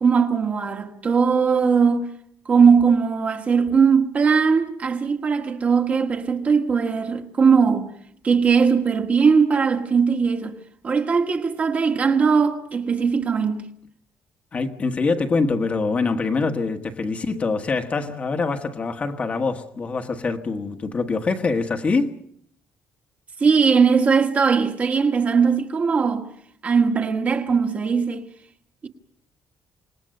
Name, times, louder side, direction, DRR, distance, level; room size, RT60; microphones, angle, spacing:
voice 1, 0.0-2.1 2.5-7.9 8.2-10.5 10.8-13.6 23.4-26.3 26.6-28.2, right 5 dB, 30° right, 1.6 m, -19 dB
voice 2, 14.5-22.1, left 4 dB, 25° left, 1.4 m, -24 dB
26.5 x 20.0 x 6.6 m
cardioid pair, 175°, 5 cm